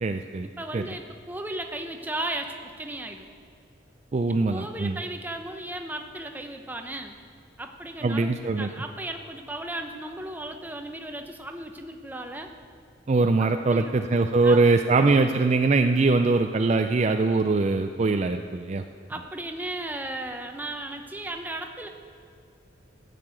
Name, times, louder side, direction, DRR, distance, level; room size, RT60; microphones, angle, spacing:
voice 1, 0.0-0.5 0.7-0.8 4.1-5.0 8.0-8.7 13.1-18.8, right 3 dB, 35° right, 6 dB, 0.4 m, -22 dB
voice 2, 0.6-3.3 4.5-7.2 7.6-12.5 13.4-14.0 14.4-15.1 19.1-21.9, right 1 dB, 10° right, 4 dB, 0.8 m, -35 dB
14.5 x 6.7 x 8.9 m, 2.3 s
head